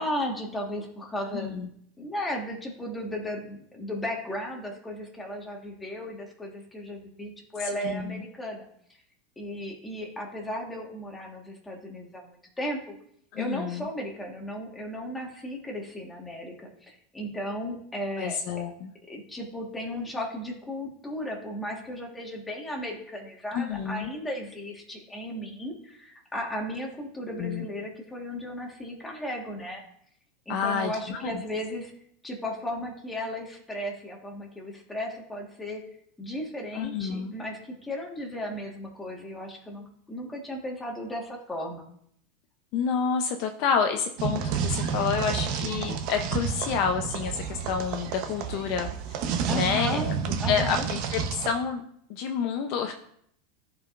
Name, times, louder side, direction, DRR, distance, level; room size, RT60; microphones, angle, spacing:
voice 1, 0.0-1.7 2.0-8.6 9.4-12.9 13.3-18.4 19.1-29.8 30.4-31.9 32.2-35.8 36.2-41.8 49.5-50.1 50.4-50.8, equal, 5° left, -1 dB, 1.5 m, -35 dB
voice 2, 1.3-1.7 7.8-8.2 13.3-13.9 18.2-18.9 23.5-24.1 27.3-27.7 30.5-31.4 36.7-37.3 42.7-49.2 49.5-50.1 50.5-51.8 52.1-52.9, left 6 dB, 50° left, 5 dB, 0.6 m, -29 dB
sound 1, 44.2-51.5, right 6 dB, 50° right, 0.9 m, -30 dB
14.5 x 4.8 x 2.5 m, 0.69 s
supercardioid pair, 155°, 0 cm